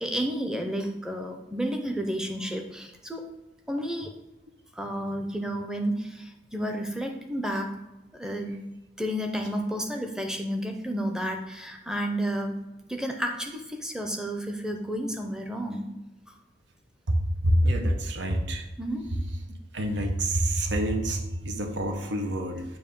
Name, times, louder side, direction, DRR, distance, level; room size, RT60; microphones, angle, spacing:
voice 1, 0.0-3.3 3.7-4.1 4.7-7.8 8.1-8.6 9.0-12.6 12.9-15.9 18.8-19.2, equal, 5° right, 3 dB, 0.6 m, -31 dB
voice 2, 17.1-18.7 19.7-22.6, right 1 dB, 85° right, 4 dB, 0.9 m, -26 dB
7.2 x 2.7 x 5.3 m, 0.98 s
head